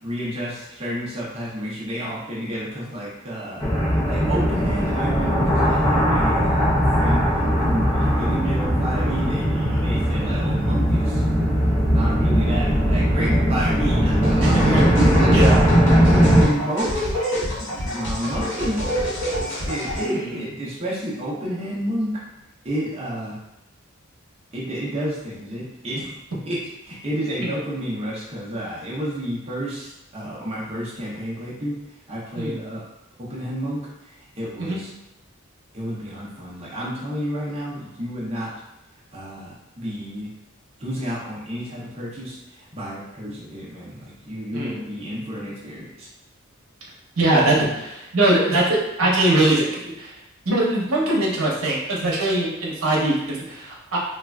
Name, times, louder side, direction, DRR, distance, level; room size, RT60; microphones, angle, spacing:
voice 1, 0.0-3.7 4.1-7.3 7.6-11.2 11.9-15.4 15.9-22.2 22.6-23.4 24.5-26.1 26.4-31.8 32.1-32.9 33.2-34.9 35.7-38.6 39.1-40.3 40.8-46.1, equal, 30° right, -6 dB, 0.6 m, -30 dB
sound 1, 3.6-16.5, equal, 20° left, 0.7 m, -19 dB
sound 2, 14.2-20.0, equal, 60° left, 1.0 m, -30 dB
voice 2, 14.4-14.9 15.3-15.6 16.0-16.1 20.1-20.3 32.4-32.5 34.6-34.8 44.5-44.8 47.2-49.7 50.0-50.1 50.5-54.0, right 1 dB, 80° right, -4 dB, 0.8 m, -21 dB
3.2 x 2.3 x 2.3 m, 0.88 s
head